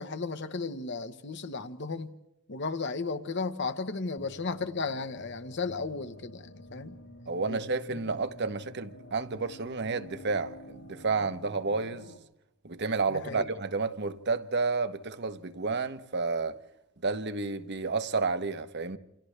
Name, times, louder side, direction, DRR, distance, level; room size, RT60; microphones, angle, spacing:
voice 1, 0.0-2.1 2.5-7.0 7.5-7.6 7.9-8.0 13.1-13.4, left 4 dB, 60° left, 1.1 m, -34 dB
sound 1, 4.2-12.2, left 1 dB, 85° left, 3.7 m, -50 dB
voice 2, 7.3-12.1 12.6-16.6 17.0-19.0, right 4 dB, 55° right, 1.1 m, -31 dB
28.5 x 27.5 x 3.3 m
head